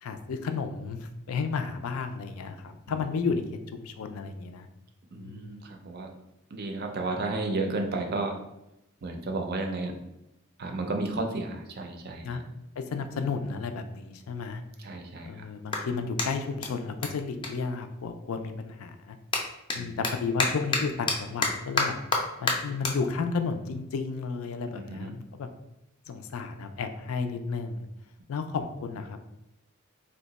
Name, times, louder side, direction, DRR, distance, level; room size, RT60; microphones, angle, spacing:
voice 1, 0.0-3.4 3.7-4.7 5.2-5.6 12.2-12.4 12.8-14.6 15.2-19.2 19.7-22.0 22.4-25.5 26.1-27.8 28.3-29.2, left 4 dB, 85° left, 7 dB, 0.4 m, -32 dB
voice 2, 5.1-6.1 6.5-8.4 9.0-9.9 10.6-12.4 14.8-15.5 19.7-20.0 24.7-25.2, right 2 dB, 50° right, 4 dB, 0.4 m, -33 dB
Clapping, 15.6-18.4 18.7-25.3, left 3 dB, 25° left, 0.4 m, -32 dB
2.8 x 2.2 x 4.0 m, 0.88 s
head